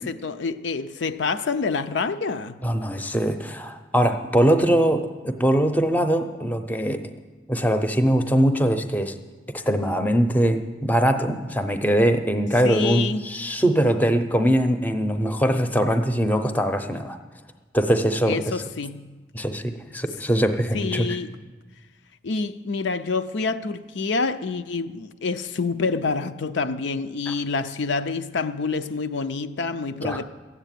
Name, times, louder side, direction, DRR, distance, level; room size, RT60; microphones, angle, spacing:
voice 1, 0.0-2.6 12.6-13.3 18.3-19.2 20.7-21.3 22.2-30.2, left 4 dB, 75° left, 0.5 m, -27 dB
voice 2, 2.6-7.0 7.5-9.1 9.5-17.2 17.7-18.5 19.3-21.1 27.3-27.4 30.0-30.2, equal, 10° left, 0.6 m, -22 dB
14.5 x 8.0 x 9.1 m
head